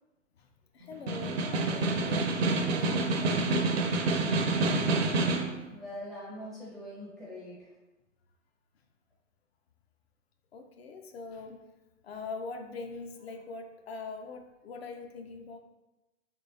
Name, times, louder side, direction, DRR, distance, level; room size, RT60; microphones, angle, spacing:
voice 1, 0.7-4.0 5.6-5.7 10.5-11.6 12.0-15.6, left 4 dB, 55° left, 5 dB, 0.5 m, -43 dB
Snare drum, 0.9-5.6, right 2 dB, 55° right, 0.5 m, -27 dB
voice 2, 5.7-7.7, left 1 dB, ahead, -8 dB, 0.4 m, -43 dB
3.5 x 3.1 x 2.8 m, 1.0 s
figure-of-eight pair, 110°, 38 cm